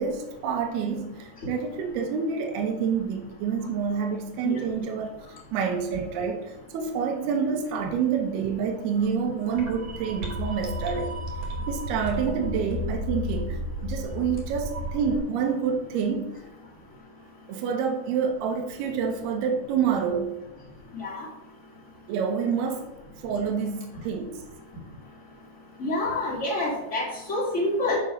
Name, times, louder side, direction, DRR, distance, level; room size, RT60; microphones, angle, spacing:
voice 1, 0.0-5.1 5.5-11.1 11.7-16.3 17.5-20.4 22.1-22.9 23.2-24.3, right 6 dB, 75° right, 2.8 m, -28 dB
sound 1, 9.4-15.2, left 1 dB, 50° right, 2.4 m, -33 dB
voice 2, 20.9-21.3 25.8-28.0, left 2 dB, 30° left, 1.3 m, -27 dB
7.0 x 5.4 x 6.4 m
omnidirectional pair, 5.1 m